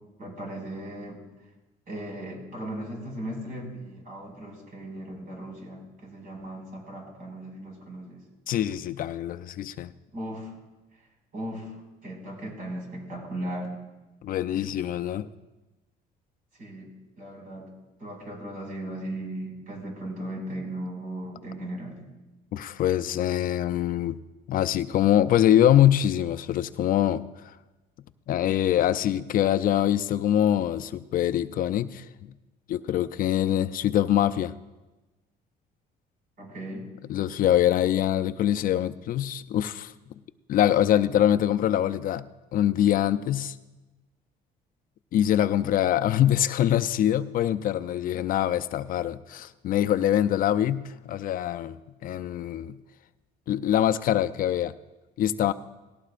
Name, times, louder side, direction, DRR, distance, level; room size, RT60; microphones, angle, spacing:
voice 1, 0.2-1.2 1.9-8.2 10.1-10.5 11.3-11.7 12.0-13.7 16.6-17.7 18.0-22.1 36.4-36.9, right 1 dB, 55° right, 5.6 m, -37 dB
voice 2, 8.5-9.9 14.2-15.3 22.5-24.2 24.5-27.6 28.3-32.1 32.7-34.5 37.1-39.9 40.5-42.3 42.5-43.6 45.1-51.8 52.0-52.8 53.5-54.7 55.2-55.5, left 11 dB, 55° left, 0.5 m, -24 dB
18.5 x 16.5 x 2.5 m
cardioid pair, 110°, 17 cm